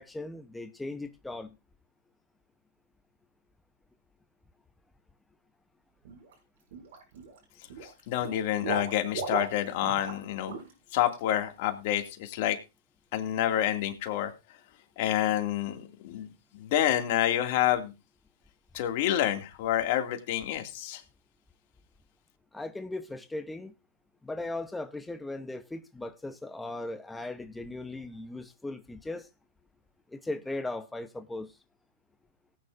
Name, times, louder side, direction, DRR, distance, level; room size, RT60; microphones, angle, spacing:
voice 1, 0.0-1.5 22.5-23.7 24.2-29.3 30.1-31.5, left 2 dB, 5° left, 0.9 m, -38 dB
Water / Liquid, 6.1-6.3 6.7-7.4 7.7-10.2 10.5-10.7 11.1-11.2, right 4 dB, 70° right, 6.8 m, -37 dB
voice 2, 8.1-10.5 10.9-12.6 13.1-14.3 15.0-17.9 18.7-21.0, left 12 dB, 55° left, 2.3 m, -28 dB
18.5 x 9.4 x 2.6 m
hypercardioid pair, 115°, 0 cm